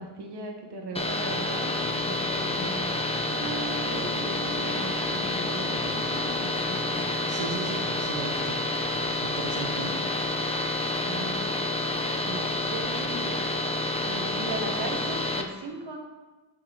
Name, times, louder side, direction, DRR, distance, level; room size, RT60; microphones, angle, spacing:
voice 1, 0.0-1.7 2.1-3.0 3.9-6.2 9.7-10.1 11.0-11.4 12.2-13.4 14.0-16.0, right 2 dB, 55° right, 1 dB, 1.6 m, -38 dB
sound 1, 1.0-9.7, left 3 dB, 35° left, 1.3 m, -43 dB
sound 2, 1.0-15.4, left 2 dB, 10° left, 0.7 m, -29 dB
Guitar, 3.3-9.3, right 4 dB, 35° right, 0.7 m, -43 dB
voice 2, 6.9-8.6 9.2-10.0, right 5 dB, 90° right, 1 dB, 1.0 m, -37 dB
9.6 x 5.2 x 4.0 m, 1.2 s
cardioid pair, 90°, 49 cm